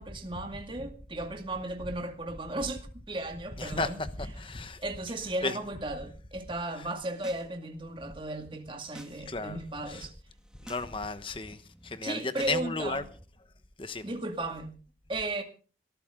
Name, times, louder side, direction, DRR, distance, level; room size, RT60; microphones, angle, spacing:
voice 1, 0.0-4.0 4.8-10.1 12.0-13.0 14.0-14.7 15.1-15.4, right 2 dB, 30° right, 2.2 m, -35 dB
voice 2, 3.6-4.8 5.4-5.6 9.3-9.6 9.9-10.1 10.6-13.0 13.8-14.1, left 3 dB, 30° left, 1.1 m, -34 dB
sound 1, 6.9-7.5 7.8-9.2 9.5-9.9 10.3-10.9 11.2-13.2, equal, 5° right, 1.5 m, -52 dB
22.0 x 13.5 x 3.8 m
head